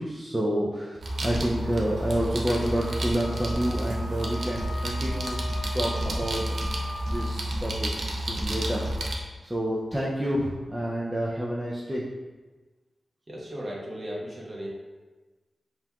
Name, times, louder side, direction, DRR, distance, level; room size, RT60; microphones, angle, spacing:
voice 1, 0.0-5.4 5.7-6.6 7.1-8.8 9.4-12.1, right 1 dB, 15° right, -5 dB, 0.4 m, -29 dB
sound 1, 1.0-9.1, right 1 dB, 70° right, 0.6 m, -30 dB
Wind instrument woodwind instrument, 2.6-7.4, left 1 dB, 50° left, 0.6 m, -41 dB
voice 2, 13.3-14.7, equal, 35° right, -4 dB, 1.0 m, -36 dB
5.3 x 2.9 x 2.3 m, 1.3 s
wide cardioid pair, 95°, 0 cm